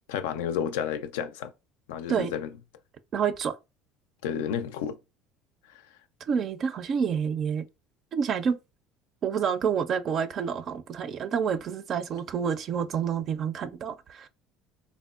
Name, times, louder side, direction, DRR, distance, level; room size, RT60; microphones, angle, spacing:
voice 1, 0.1-1.5 1.9-2.5 4.2-5.0 5.7-5.8, left 8 dB, 85° left, 0.3 m, -31 dB
voice 2, 3.1-3.6 6.2-7.6 8.1-8.6 9.2-14.3, right 7 dB, 45° right, 0.4 m, -28 dB
3.5 x 2.1 x 2.3 m
supercardioid pair, 90°, 0 cm